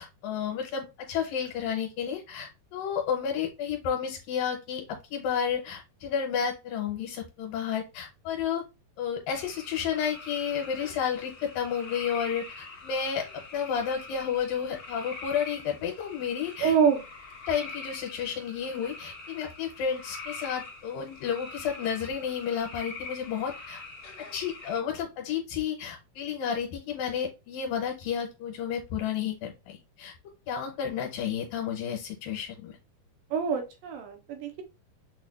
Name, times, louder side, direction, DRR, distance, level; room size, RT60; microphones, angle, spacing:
voice 1, 0.0-8.6 9.0-16.8 17.5-23.8 24.3-30.1 30.5-32.8, left 7 dB, 75° left, 0 dB, 2.5 m, -31 dB
sound 1, 9.3-24.8, left 3 dB, 55° left, 1.0 m, -44 dB
voice 2, 16.6-17.0 33.3-34.6, right 6 dB, 75° right, 4 dB, 2.4 m, -26 dB
6.5 x 2.4 x 2.3 m, 0.25 s
omnidirectional pair, 4.1 m